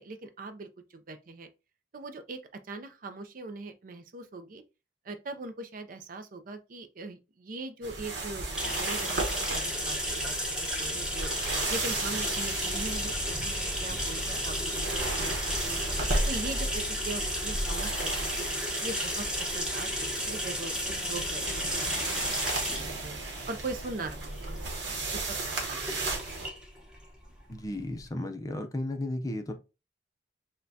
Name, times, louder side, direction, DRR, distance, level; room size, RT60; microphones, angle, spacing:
voice 1, 0.0-1.5 1.9-2.4 2.7-4.6 5.1-10.4 10.6-11.3 11.7-15.8 16.3-18.5 18.8-19.9 20.3-20.8 21.1-22.3 22.8-23.1 23.5-24.6 24.8-26.2, right 3 dB, 45° right, 0.5 m, -41 dB
sound 1, 7.8-26.5, right 2 dB, 65° right, 1.0 m, -36 dB
sound 2, 8.6-28.0, equal, 5° right, 0.9 m, -34 dB
sound 3, 11.4-19.1, equal, 20° right, 2.0 m, -38 dB
voice 2, 27.5-29.5, left 1 dB, 20° left, 0.5 m, -34 dB
6.4 x 2.2 x 2.7 m
head